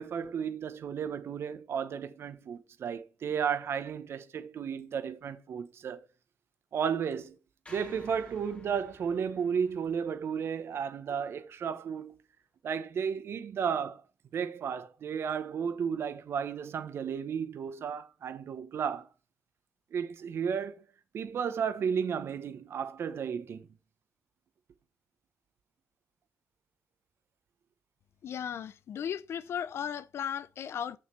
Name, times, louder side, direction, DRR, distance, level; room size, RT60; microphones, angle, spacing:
voice 1, 0.0-6.0 6.7-7.4 7.7-12.1 12.6-14.0 14.3-19.1 19.9-20.8 21.1-23.7, right 7 dB, 65° right, 1.1 m, -33 dB
sound 1, 7.6-12.0, left 2 dB, 25° left, 2.1 m, -56 dB
voice 2, 28.2-31.0, left 8 dB, 65° left, 0.6 m, -36 dB
6.4 x 6.4 x 4.4 m
cardioid pair, 70°, 5 cm